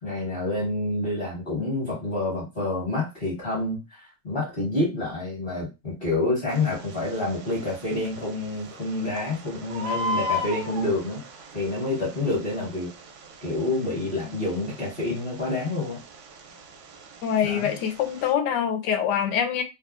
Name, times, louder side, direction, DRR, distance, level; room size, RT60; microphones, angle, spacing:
voice 1, 0.0-11.2 11.5-12.9 13.4-16.0 17.4-17.7, left 2 dB, 35° left, 1.1 m, -28 dB
Bird, 6.5-18.3, left 1 dB, 85° right, 1.4 m, -37 dB
voice 2, 17.2-19.6, left 8 dB, 75° left, 1.1 m, -24 dB
3.2 x 2.4 x 2.4 m
omnidirectional pair, 2.1 m